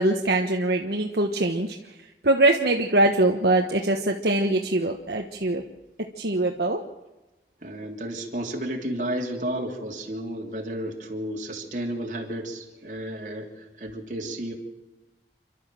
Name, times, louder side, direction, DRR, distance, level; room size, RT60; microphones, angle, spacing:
voice 1, 0.0-1.8 2.2-5.6 6.2-6.8, right 2 dB, 65° right, 2 dB, 1.3 m, -22 dB
voice 2, 7.6-14.5, right 1 dB, 45° right, 1 dB, 3.3 m, -32 dB
29.0 x 12.5 x 7.7 m, 1.1 s
head